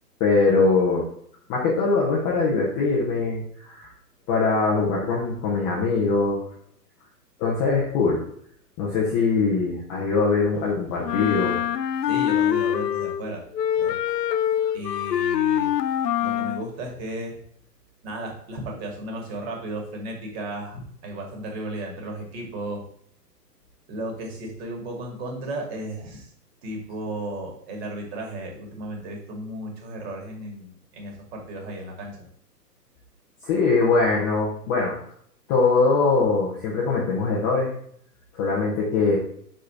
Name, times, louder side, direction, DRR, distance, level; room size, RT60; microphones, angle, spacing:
voice 1, 0.2-1.1 1.5-3.9 4.3-6.4 7.4-8.2 8.8-11.6 33.4-34.9 35.5-37.7 38.3-39.2, left 4 dB, 10° left, -4 dB, 0.5 m, -22 dB
Wind instrument woodwind instrument, 11.0-13.3 13.5-16.7, left 10 dB, 75° left, 0.6 m, -24 dB
voice 2, 12.0-13.4 13.8-14.0 14.7-15.7 16.2-17.4 18.0-22.8 23.9-26.3 26.6-32.2, right 1 dB, 35° right, 1 dB, 2.3 m, -34 dB
5.0 x 4.6 x 5.8 m, 0.65 s
hypercardioid pair, 130°, 49 cm